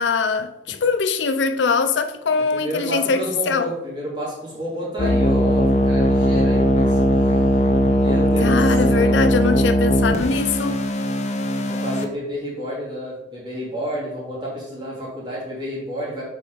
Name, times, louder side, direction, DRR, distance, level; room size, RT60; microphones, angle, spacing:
voice 1, 0.0-3.7 8.4-10.8, left 5 dB, 80° left, 0.5 m, -22 dB
voice 2, 2.5-7.4 7.9-9.2 11.6-16.2, equal, 25° right, 2.9 m, -30 dB
sound 1, 5.0-12.0, equal, 40° left, 0.6 m, -19 dB
8.3 x 5.1 x 4.0 m
head